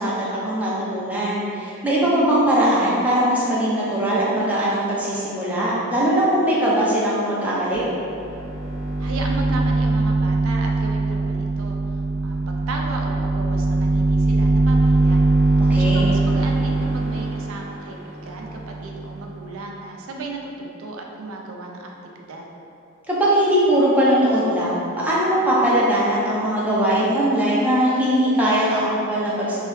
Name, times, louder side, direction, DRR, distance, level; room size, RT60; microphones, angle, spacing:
voice 1, 0.0-7.8 15.7-16.1 23.1-29.6, right 1 dB, 5° right, -8 dB, 0.6 m, -20 dB
sound 1, 7.7-7.8 8.1-19.2, right 2 dB, 20° left, 1.3 m, -21 dB
voice 2, 9.0-15.2 15.5-22.5, right 2 dB, 80° right, 0 dB, 0.4 m, -35 dB
3.1 x 2.8 x 3.1 m, 2.7 s
head